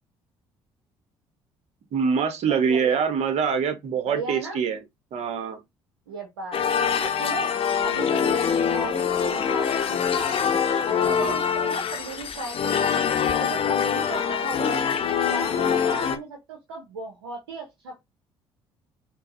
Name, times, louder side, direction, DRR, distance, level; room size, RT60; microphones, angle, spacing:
voice 1, 1.9-4.8 5.1-5.6 11.0-11.4, right 6 dB, 55° right, 0.9 m, -24 dB
voice 2, 2.5-3.0 4.1-4.6 6.1-6.6 7.0-7.5 7.8-10.5 10.9-13.1 13.4-14.8 15.2-18.0, right 3 dB, 85° right, 0.6 m, -36 dB
sound 1, 6.5-16.2, left 7 dB, 45° left, 0.6 m, -24 dB
4.4 x 2.0 x 2.6 m
hypercardioid pair, 50°, 13 cm